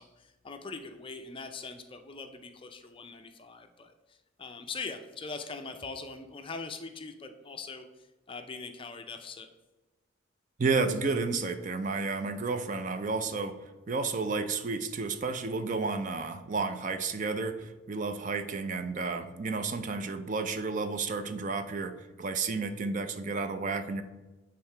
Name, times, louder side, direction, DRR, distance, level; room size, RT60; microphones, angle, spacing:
voice 1, 0.0-7.8 8.3-9.5, left 4 dB, 25° left, 7 dB, 0.4 m, -42 dB
voice 2, 10.6-13.5 13.9-21.9 22.2-24.0, right 4 dB, 40° right, 9 dB, 0.4 m, -31 dB
7.6 x 3.6 x 4.4 m, 1.1 s
head